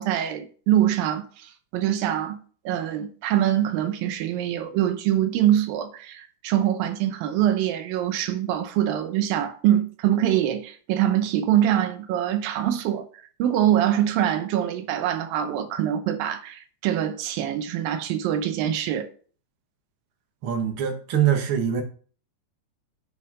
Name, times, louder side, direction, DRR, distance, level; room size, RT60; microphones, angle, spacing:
voice 1, 0.0-13.1 13.4-19.1, right 11 dB, 90° right, 2.7 m, -24 dB
voice 2, 20.4-21.8, right 9 dB, 45° right, 2.0 m, -23 dB
8.0 x 5.7 x 5.4 m
omnidirectional pair, 4.0 m